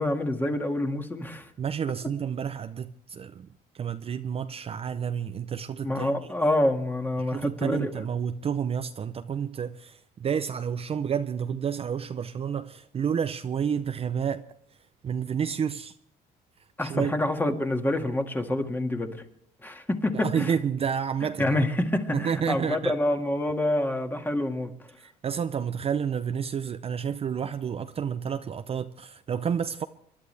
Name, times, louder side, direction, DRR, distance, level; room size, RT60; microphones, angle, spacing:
voice 1, 0.0-1.5 5.8-7.9 16.8-19.2 19.6-20.5 21.4-24.7, left 1 dB, 10° left, 1.9 m, -27 dB
voice 2, 1.6-3.5 3.7-6.1 7.2-14.4 15.0-15.9 16.8-17.1 20.1-21.6 22.1-22.9 25.0-29.8, right 7 dB, 35° right, 0.5 m, -30 dB
28.0 x 11.5 x 3.4 m
cardioid pair, 110°, 17 cm